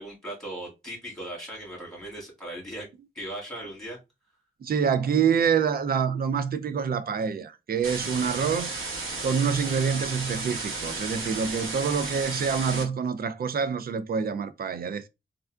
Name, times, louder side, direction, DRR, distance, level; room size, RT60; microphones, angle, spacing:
voice 1, 0.0-2.9 3.1-4.0 8.3-8.5, right 1 dB, ahead, 1.9 m, -38 dB
voice 2, 4.6-8.8 9.2-15.1, right 6 dB, 50° right, 0.4 m, -26 dB
sound 1, 7.8-12.8, right 3 dB, 80° right, 0.9 m, -33 dB
3.4 x 2.4 x 2.3 m
wide cardioid pair, 100°, 21 cm